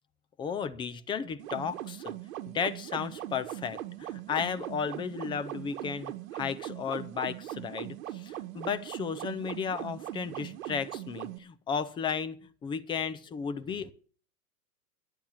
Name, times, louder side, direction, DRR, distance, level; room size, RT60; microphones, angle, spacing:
voice 1, 0.4-2.1 2.5-13.9, left 6 dB, 10° left, 0.5 m, -34 dB
sound 1, 1.4-11.4, right 14 dB, 60° right, 1.3 m, -40 dB
11.5 x 8.8 x 7.4 m
hypercardioid pair, 130°, 46 cm